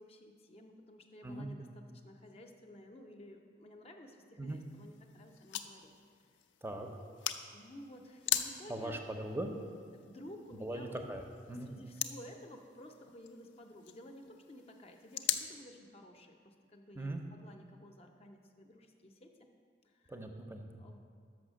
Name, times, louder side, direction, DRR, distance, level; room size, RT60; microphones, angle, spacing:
voice 1, 0.0-5.9 7.5-9.0 9.9-11.0 11.5-19.5 19.8-20.2 20.8-21.0, left 1 dB, 35° left, 4 dB, 0.5 m, -53 dB
sound 1, 4.5-15.5, left 11 dB, 85° left, 0.4 m, -42 dB
voice 2, 8.7-9.5 10.6-11.2 11.5-11.7 17.0-17.2 20.1-20.8, right 1 dB, 15° right, 4 dB, 0.5 m, -40 dB
6.2 x 5.7 x 6.2 m, 2.1 s
head